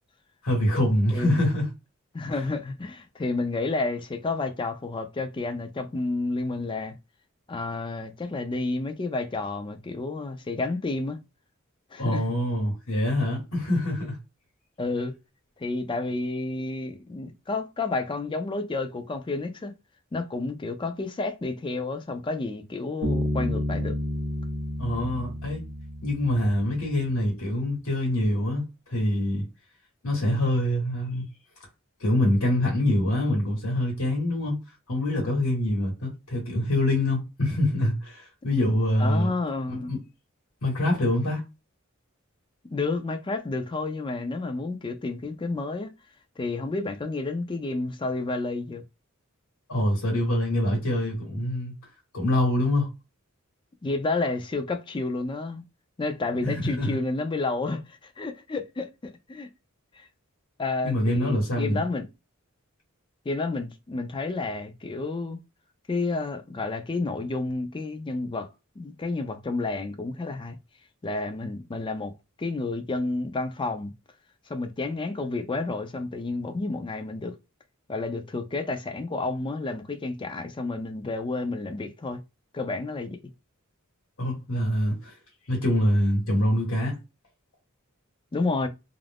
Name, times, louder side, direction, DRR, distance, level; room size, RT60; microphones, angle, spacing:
voice 1, 0.4-1.7 12.0-14.2 24.8-25.6 26.0-28.6 28.9-29.4 30.0-31.2 32.0-34.6 34.9-39.3 39.7-40.0 40.6-41.4 49.7-51.7 52.1-52.9 56.4-57.0 60.8-61.8 84.2-85.2 85.5-87.0, left 1 dB, 75° left, 1.1 m, -25 dB
voice 2, 2.1-6.9 7.5-11.2 11.9-12.2 14.8-15.2 15.6-19.7 20.1-24.0 39.0-40.0 42.7-45.9 46.4-48.8 53.8-55.6 56.0-59.5 60.0-60.1 60.6-62.1 63.3-65.4 65.9-68.5 68.8-70.6 71.0-72.1 72.4-73.9 74.5-77.3 77.9-82.2 82.5-83.2 88.3-88.7, left 3 dB, 25° left, 0.4 m, -30 dB
Bass guitar, 23.0-26.7, equal, 80° right, 0.7 m, -30 dB
2.5 x 2.0 x 3.3 m
head